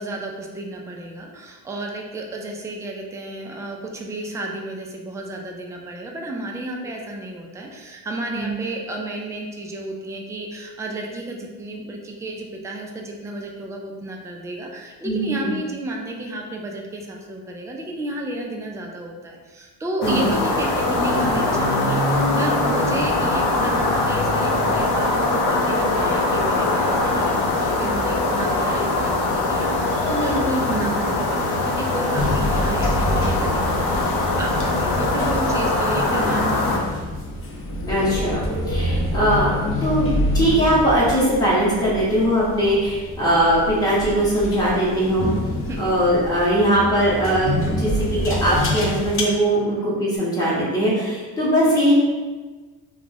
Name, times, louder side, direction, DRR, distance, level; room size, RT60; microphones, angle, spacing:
voice 1, 0.0-36.9 45.6-45.8, right 1 dB, 10° right, 0 dB, 0.3 m, -32 dB
voice 2, 15.0-15.5 20.0-20.3 30.7-30.8 37.8-45.3 45.8-51.9, right 1 dB, 10° left, -8 dB, 1.0 m, -20 dB
sound 1, 20.0-36.8, left 2 dB, 75° left, 0.7 m, -22 dB
sound 2, 32.2-49.2, left 1 dB, 35° left, 0.6 m, -27 dB
2.4 x 2.2 x 3.3 m, 1.3 s
supercardioid pair, 80°, 40 cm